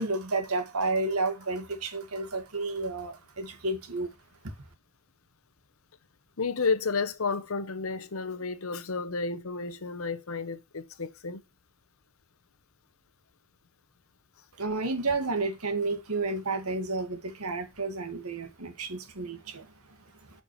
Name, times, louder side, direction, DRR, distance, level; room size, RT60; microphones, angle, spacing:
voice 1, 0.0-4.1 4.4-4.5 14.6-19.7, right 3 dB, 85° right, 1.9 m, -31 dB
voice 2, 6.4-11.4, left 4 dB, 65° left, 0.9 m, -31 dB
9.1 x 5.9 x 3.1 m
head